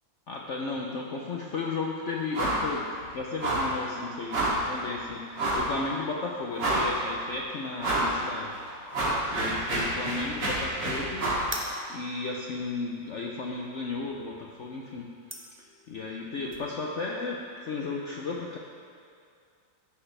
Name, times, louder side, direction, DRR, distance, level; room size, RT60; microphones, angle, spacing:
voice 1, 0.3-9.0 9.3-11.3 11.9-18.6, left 3 dB, 65° left, -1 dB, 0.7 m, -34 dB
sound 1, 2.3-2.7 2.9-3.1 3.4-3.8 4.3-4.7 5.3-5.7 6.2-6.3 6.6-7.1 7.8-8.1 8.5-11.5, right 1 dB, 70° right, 2.9 m, -28 dB
sound 2, 11.4-16.6, right 1 dB, 20° right, 0.3 m, -43 dB
14.5 x 6.7 x 3.3 m, 2.3 s
omnidirectional pair, 2.0 m